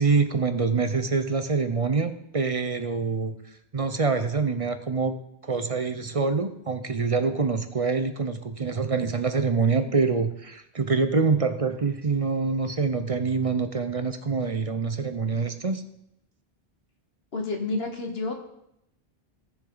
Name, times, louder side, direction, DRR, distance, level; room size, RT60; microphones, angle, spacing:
voice 1, 0.0-3.4 3.7-5.1 5.4-15.8, right 4 dB, 40° right, 9 dB, 0.7 m, -25 dB
voice 2, 17.3-18.3, left 3 dB, 75° left, 3 dB, 1.6 m, -29 dB
16.0 x 7.0 x 3.9 m, 0.79 s
omnidirectional pair, 1.0 m